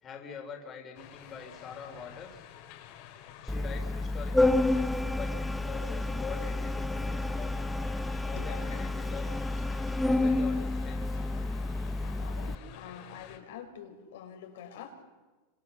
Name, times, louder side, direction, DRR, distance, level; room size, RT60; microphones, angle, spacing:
voice 1, 0.0-2.4 3.4-7.5 8.2-9.3 10.0-11.2, left 6 dB, 25° left, 3 dB, 3.9 m, -44 dB
sound 1, 0.9-13.4, left 10 dB, 55° left, 3.8 m, -50 dB
Organ, 3.5-12.5, left 2 dB, 5° left, 0.7 m, -30 dB
voice 2, 8.4-8.8 12.0-15.0, left 8 dB, 80° left, 4 dB, 5.0 m, -46 dB
29.0 x 26.0 x 7.1 m, 1.3 s
supercardioid pair, 145°, 0 cm